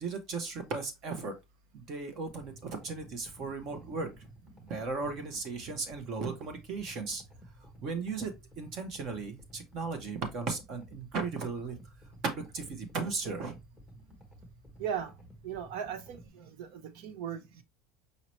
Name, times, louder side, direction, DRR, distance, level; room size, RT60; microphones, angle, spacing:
voice 1, 0.0-1.3 1.7-2.5 2.8-4.1 4.7-7.2 7.8-8.3 8.6-11.8 12.2-13.5, right 4 dB, 35° right, 0.9 m, -36 dB
sound 1, 2.3-16.3, right 1 dB, 5° right, 1.0 m, -54 dB
voice 2, 14.8-15.1 15.4-17.6, right 8 dB, 65° right, 0.6 m, -38 dB
5.2 x 2.9 x 3.0 m
cardioid pair, 170°, 0 cm